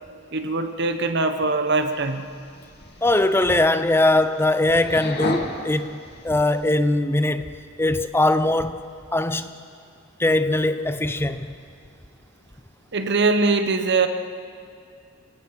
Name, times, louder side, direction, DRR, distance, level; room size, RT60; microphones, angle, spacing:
voice 1, 0.3-2.3 12.9-14.1, right 3 dB, 55° right, 1.2 m, -22 dB
sound 1, 1.8-6.8, left 2 dB, 55° left, 2.1 m, -36 dB
voice 2, 3.0-6.0 6.2-7.5 7.8-8.8 9.1-9.5 10.2-11.5, left 2 dB, 10° left, 0.7 m, -21 dB
28.0 x 17.5 x 5.8 m
head